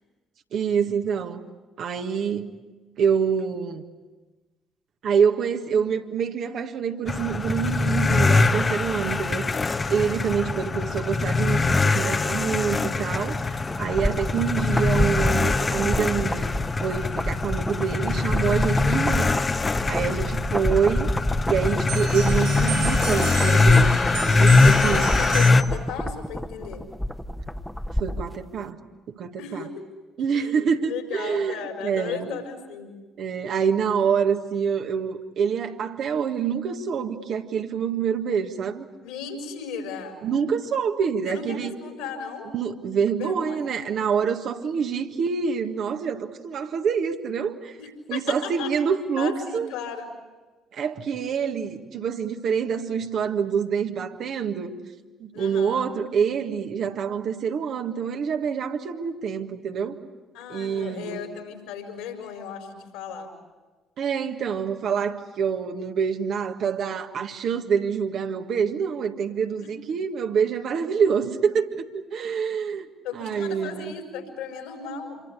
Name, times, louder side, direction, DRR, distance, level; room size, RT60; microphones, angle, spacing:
voice 1, 0.5-1.4 1.8-2.5 3.0-3.8 5.0-9.5 9.9-19.3 19.9-21.1 21.5-25.1 28.0-28.8 29.1-29.6 30.2-32.2 33.2-38.9 40.2-41.7 42.5-47.8 48.1-49.7 50.7-54.7 55.2-60.0 60.5-61.2 64.0-72.9 73.1-73.9, right 6 dB, 55° right, 5 dB, 1.6 m, -26 dB
sound 1, 7.1-25.6, left 3 dB, 30° left, 1.2 m, -22 dB
sound 2, 13.7-28.4 28.6-28.7, equal, 5° left, 1.3 m, -29 dB
sound 3, 21.9-25.8, right 9 dB, 75° right, 1.6 m, -33 dB
voice 2, 24.6-26.8 29.4-29.9 30.3-33.0 39.0-40.2 41.3-42.5 43.2-43.7 47.8-48.8 49.2-50.1 55.3-55.9 60.3-63.3 69.6-69.7 73.0-75.2, left 6 dB, 70° left, 4 dB, 4.7 m, -36 dB
27.5 x 23.5 x 8.2 m, 1.2 s
figure-of-eight pair, 45°, 0 cm